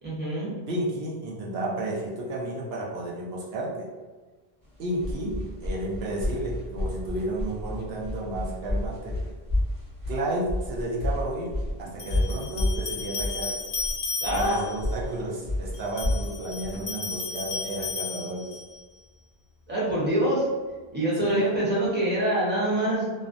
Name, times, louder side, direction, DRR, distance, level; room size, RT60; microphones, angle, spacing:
voice 1, 0.0-0.6 14.2-14.6 19.7-20.5 20.9-23.2, right 1 dB, 10° right, -8 dB, 0.7 m, -25 dB
voice 2, 0.7-3.9 4.8-9.2 10.1-13.6 14.3-18.6 21.2-21.6, right 1 dB, 70° right, -4 dB, 0.9 m, -32 dB
sound 1, 4.7-17.9, left 1 dB, 40° right, 1.0 m, -31 dB
sound 2, 12.0-14.8 15.7-18.8, left 4 dB, 85° left, 0.8 m, -34 dB
2.4 x 2.1 x 2.5 m, 1.3 s
omnidirectional pair, 1.1 m